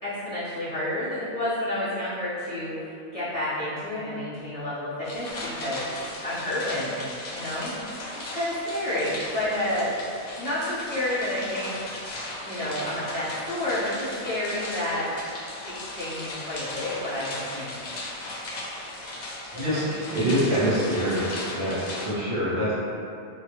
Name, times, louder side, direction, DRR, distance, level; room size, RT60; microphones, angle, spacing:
voice 1, 0.0-5.9 6.2-7.0 7.3-7.7 8.3-10.0 10.4-11.8 12.4-15.1 15.6-17.9 19.5-19.9, left 1 dB, 35° left, -14 dB, 0.8 m, -30 dB
sound 1, 5.0-22.1, left 2 dB, 65° left, 0.4 m, -37 dB
voice 2, 19.5-21.3 21.5-22.7, equal, 60° right, -10 dB, 0.7 m, -25 dB
2.3 x 2.1 x 2.9 m, 2.5 s
omnidirectional pair, 1.2 m